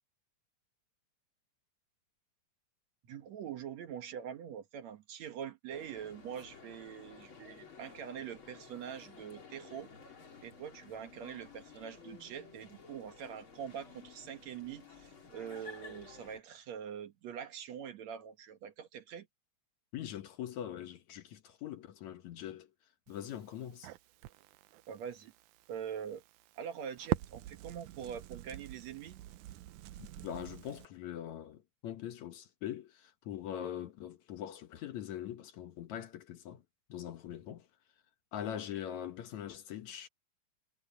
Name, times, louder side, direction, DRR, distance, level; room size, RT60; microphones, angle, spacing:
voice 1, 3.1-9.9 10.4-19.3 24.9-25.3 25.7-26.2 26.6-29.2, right 8 dB, 60° right, 2.3 m, -44 dB
sound 1, 5.7-16.4, left 5 dB, 40° left, 3.8 m, -54 dB
voice 2, 19.9-22.7 23.1-23.9 30.0-36.6 36.9-37.7 38.3-40.1, left 10 dB, 65° left, 2.2 m, -42 dB
Crackle, 23.1-30.9, right 16 dB, 75° right, 2.0 m, -43 dB
omnidirectional pair, 3.9 m